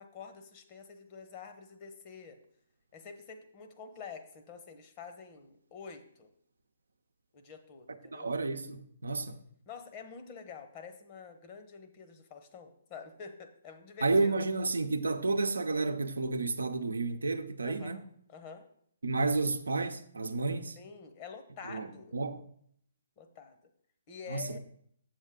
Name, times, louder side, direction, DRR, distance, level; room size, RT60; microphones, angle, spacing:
voice 1, 0.0-2.4 2.9-6.3 7.3-8.3 9.7-14.3 17.6-18.6 20.8-22.1 23.2-23.6 24.1-24.6, left 6 dB, 35° left, 1.1 m, -48 dB
voice 2, 8.1-9.4 14.0-18.0 19.0-20.8 21.7-21.9 22.1-22.4 24.3-24.6, right 3 dB, 80° right, 0.7 m, -31 dB
7.9 x 7.4 x 3.7 m
figure-of-eight pair, 135°, 0 cm